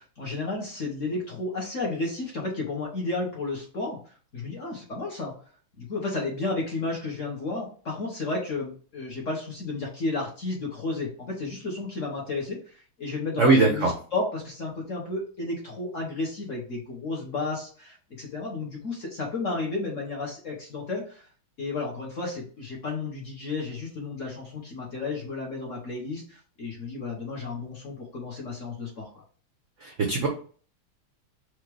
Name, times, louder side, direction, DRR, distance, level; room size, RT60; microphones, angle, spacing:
voice 1, 0.0-4.0 4.3-5.3 5.8-21.3 21.6-29.2, left 3 dB, 50° left, -2 dB, 1.0 m, -32 dB
voice 2, 13.4-13.9 29.8-30.3, right 3 dB, 70° right, 1 dB, 0.7 m, -20 dB
4.6 x 2.4 x 4.6 m, 0.42 s
omnidirectional pair, 2.3 m